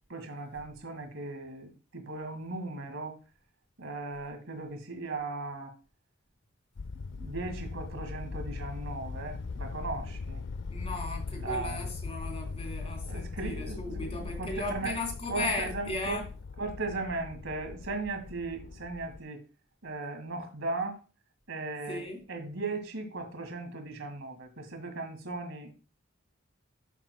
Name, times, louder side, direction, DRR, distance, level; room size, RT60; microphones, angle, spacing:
voice 1, 0.1-3.2 3.8-5.8 7.1-10.5 11.3-11.9 13.0-15.0 15.3-16.3 16.6-19.4 19.8-21.0 21.5-25.7, right 3 dB, 75° right, 2.0 m, -37 dB
sound 1, 6.8-19.2, left 4 dB, 65° left, 0.4 m, -40 dB
voice 2, 10.7-16.2 21.9-22.2, left 2 dB, 30° left, 3.4 m, -36 dB
13.0 x 7.4 x 2.2 m
head